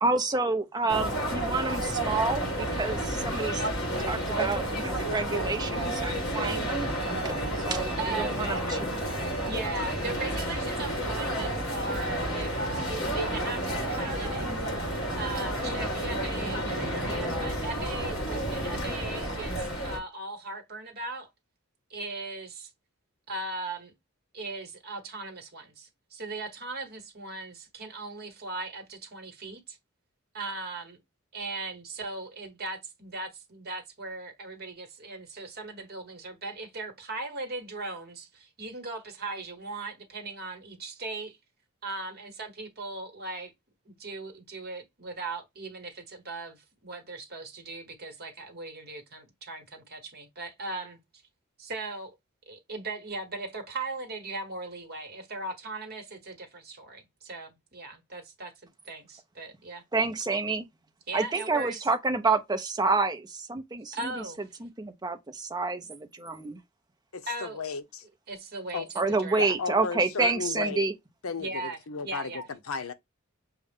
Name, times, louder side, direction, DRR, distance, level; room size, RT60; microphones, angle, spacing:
voice 1, 0.0-3.6 4.0-6.9 7.2-8.9 59.9-60.6 61.1-64.2 64.6-66.6 69.0-70.9, right 3 dB, 20° right, 0.6 m, -29 dB
sound 1, 0.9-20.0, right 1 dB, 55° left, 2.8 m, -31 dB
voice 2, 8.0-8.4 9.5-14.5 15.2-21.3 21.9-22.7 23.3-23.9 24.3-29.8 30.3-31.0 31.3-41.4 41.8-43.5 43.8-51.2 51.6-52.1 52.5-59.8 61.1-61.9 63.9-64.6 65.8-65.9 67.3-67.6 68.3-69.5 71.4-72.5, right 2 dB, 50° right, 1.2 m, -38 dB
voice 3, 67.1-68.0 68.7-68.9 69.4-70.8 71.2-72.9, left 5 dB, 85° left, 0.7 m, -34 dB
6.4 x 2.3 x 3.5 m
head